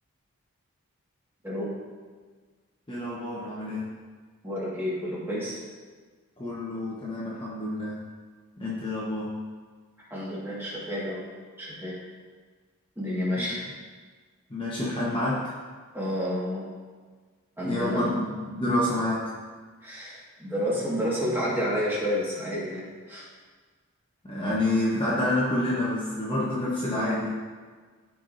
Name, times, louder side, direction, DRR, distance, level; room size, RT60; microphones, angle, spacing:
voice 1, 2.9-3.9 6.4-8.1 8.6-9.4 13.4-13.5 14.5-15.5 17.6-19.3 24.3-27.3, left 1 dB, 25° left, -7 dB, 1.0 m, -28 dB
voice 2, 4.4-5.6 10.1-11.2 11.6-12.0 13.0-13.6 15.9-16.7 17.6-18.1 19.8-23.3, equal, 10° right, -7 dB, 1.7 m, -30 dB
13.0 x 4.7 x 2.6 m, 1.5 s
head